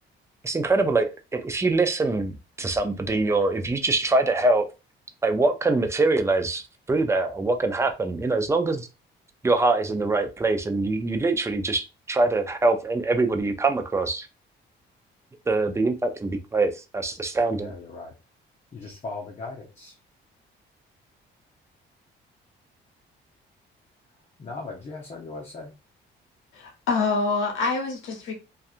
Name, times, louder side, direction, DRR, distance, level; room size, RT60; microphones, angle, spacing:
voice 1, 0.4-4.7 5.2-8.9 9.4-14.3 15.5-17.7, right 3 dB, 15° right, 0.4 m, -24 dB
voice 2, 17.5-18.1 18.7-20.0 24.4-25.7, left 3 dB, 35° left, 0.8 m, -38 dB
voice 3, 26.5-28.3, left 4 dB, 90° left, 0.7 m, -26 dB
2.6 x 2.4 x 2.4 m
cardioid pair, 90°, 20 cm